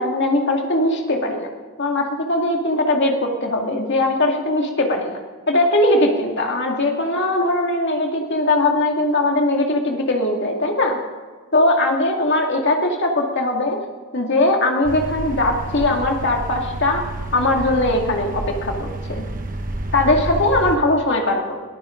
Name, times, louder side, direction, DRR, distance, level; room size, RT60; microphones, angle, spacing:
voice 1, 0.0-1.5 1.8-5.2 5.5-11.0 11.5-13.8 14.1-17.0 17.3-19.3 19.9-21.4, left 2 dB, 55° left, 1 dB, 2.3 m, -20 dB
sound 1, 14.8-20.8, right 2 dB, 40° right, 1.2 m, -29 dB
21.5 x 14.0 x 3.9 m, 1.5 s
head